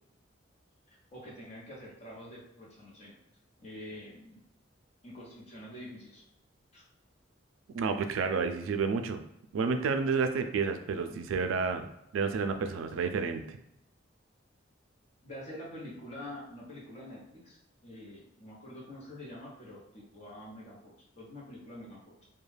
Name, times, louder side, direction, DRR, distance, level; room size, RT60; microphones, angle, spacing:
voice 1, 1.1-3.1 3.6-4.4 5.0-6.2 6.7-6.8 11.1-11.2 15.2-17.6 17.8-22.3, left 1 dB, 35° left, -4 dB, 0.8 m, -46 dB
voice 2, 7.7-9.2 9.5-11.9 12.1-13.6, right 5 dB, 85° right, 8 dB, 0.3 m, -30 dB
2.2 x 2.2 x 3.2 m, 0.79 s
head